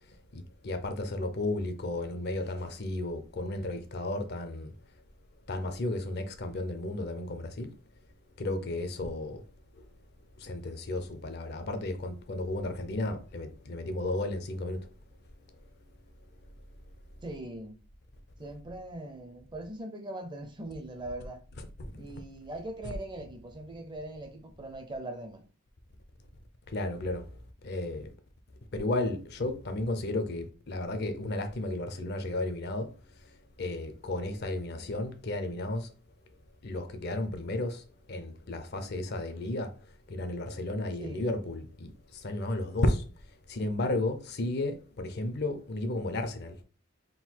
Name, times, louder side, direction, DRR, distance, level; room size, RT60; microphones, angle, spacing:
voice 1, 0.3-4.7 5.5-7.8 8.4-9.4 9.8-9.9 10.4-14.9 21.8-22.1 26.7-27.3 27.6-28.1 28.7-32.9 33.2-33.3 33.6-35.9 36.6-39.7 40.1-43.0 43.5-46.6, left 2 dB, 50° left, 0.5 m, -33 dB
voice 2, 17.2-17.8 18.4-21.4 22.0-25.5 34.7-34.9 41.0-41.4, right 1 dB, 20° right, 0.5 m, -41 dB
3.8 x 2.3 x 4.3 m
head